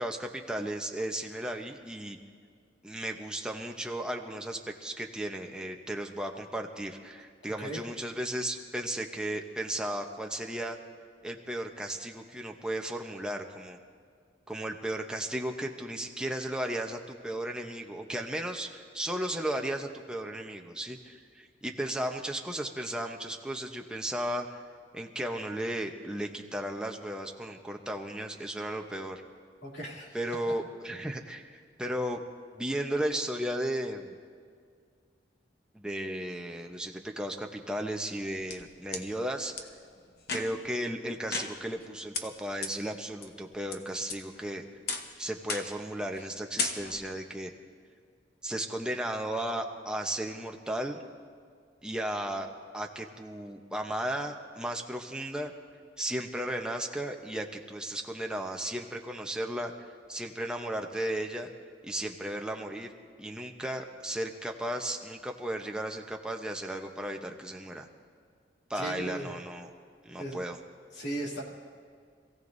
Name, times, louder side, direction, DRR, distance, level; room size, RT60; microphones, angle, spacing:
voice 1, 0.0-2.2 2.8-10.8 11.2-13.8 14.5-24.6 24.9-29.2 30.1-32.2 32.5-34.1 35.7-39.5 40.3-44.6 45.2-47.5 48.4-51.0 51.8-55.5 56.0-59.7 60.1-61.5 61.8-62.9 63.2-67.9 68.7-69.7 70.0-70.6, right 1 dB, 5° right, 2 dB, 0.9 m, -35 dB
voice 2, 29.6-30.2 68.7-69.3 70.2-70.4 70.9-71.4, right 1 dB, 75° left, -3 dB, 2.8 m, -37 dB
sound 1, 38.1-39.0 39.6-39.7 40.2-40.7 41.3-41.9 42.1-42.2 42.6-42.7 43.2-43.8 44.1-44.5 44.9-45.1 45.5-45.8 46.1-46.3 46.6-47.1, left 4 dB, 60° left, 1.0 m, -35 dB
26.5 x 16.0 x 2.7 m, 2.1 s
head